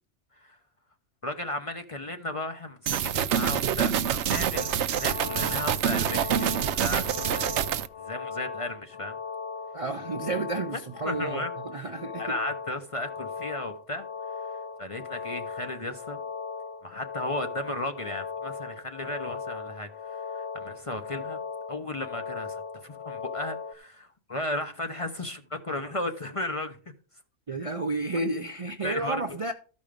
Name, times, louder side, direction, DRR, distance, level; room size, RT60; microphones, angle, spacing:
voice 1, 1.2-9.2 10.7-11.9 12.2-14.1 14.3-14.5 14.8-16.2 16.8-21.4 21.7-26.8 28.8-29.4, left 1 dB, 30° left, 0.8 m, -35 dB
sound 1, 2.9-7.9, right 9 dB, 70° right, 0.9 m, -26 dB
sound 2, 4.5-23.7, left 5 dB, 65° left, 1.2 m, -38 dB
voice 2, 9.7-12.4 27.5-29.5, right 2 dB, 40° right, 0.5 m, -32 dB
13.5 x 5.4 x 5.1 m
omnidirectional pair, 1.3 m